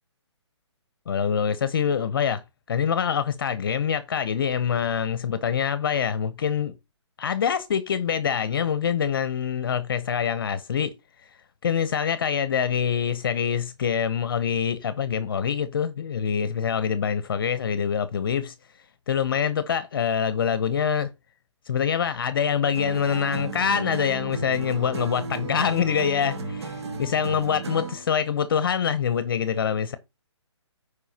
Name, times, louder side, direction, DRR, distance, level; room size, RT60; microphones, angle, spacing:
voice 1, 1.1-2.4 2.7-6.7 7.2-10.9 11.6-18.5 19.1-21.1 21.7-30.0, left 7 dB, 50° left, 0.7 m, -25 dB
sound 1, 22.7-28.1, right 3 dB, 65° right, 1.5 m, -34 dB
14.0 x 4.9 x 2.8 m
hypercardioid pair, 170°, 15 cm